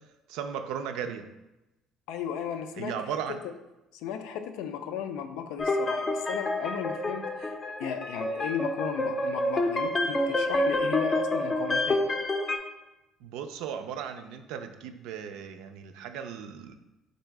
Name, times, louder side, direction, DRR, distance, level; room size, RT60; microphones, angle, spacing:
voice 1, 0.3-1.3 2.7-3.4 13.2-16.8, right 8 dB, 85° right, 8 dB, 0.4 m, -36 dB
voice 2, 2.1-3.1 3.4-3.5 4.0-7.5 7.8-12.0, left 8 dB, 85° left, 8 dB, 0.4 m, -35 dB
sound 1, 5.6-12.6, left 1 dB, 20° left, 0.5 m, -28 dB
3.9 x 2.7 x 4.5 m, 0.97 s
cardioid pair, 115°, 0 cm